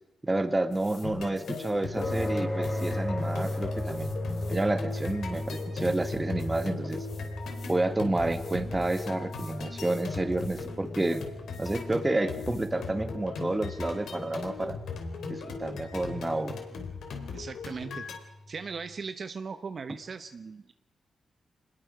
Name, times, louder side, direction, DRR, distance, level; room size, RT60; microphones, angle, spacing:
voice 1, 0.2-4.1 4.5-7.1 7.7-11.3 11.6-14.8 15.3-16.6, right 2 dB, 15° right, 9 dB, 1.5 m, -30 dB
sound 1, 0.7-1.1 1.4-2.3 2.6-7.8 8.1-10.1 10.4-10.7 10.9-11.8 12.3-12.7, left 4 dB, 50° left, 4.1 m, -54 dB
sound 2, 1.0-18.2, left 4 dB, 80° left, 3.3 m, -39 dB
sound 3, 2.0-18.5, left 1 dB, 20° left, 4.0 m, -37 dB
voice 2, 17.3-18.0 18.5-20.7, right 5 dB, 45° right, 10 dB, 0.8 m, -38 dB
26.5 x 20.0 x 5.0 m, 1.0 s
wide cardioid pair, 130°, 0 cm